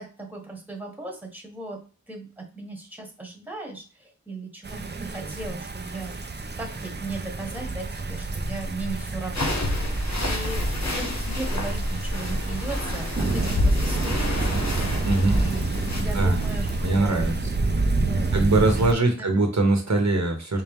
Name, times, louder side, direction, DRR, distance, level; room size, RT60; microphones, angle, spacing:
voice 1, 0.0-1.8 2.1-6.2 6.6-9.9 10.1-17.3 18.1-18.9 19.2-19.4, right 3 dB, 5° right, 1 dB, 1.3 m, -37 dB
sound 1, 4.6-18.9, right 3 dB, 35° right, 0.5 m, -29 dB
sound 2, 9.3-17.0, left 1 dB, 65° left, 1.2 m, -28 dB
voice 2, 15.0-15.4 16.1-16.4 16.8-17.4 18.3-20.6, right 2 dB, 70° right, 3 dB, 1.0 m, -22 dB
4.4 x 2.1 x 3.6 m, 0.36 s
wide cardioid pair, 60°, 29 cm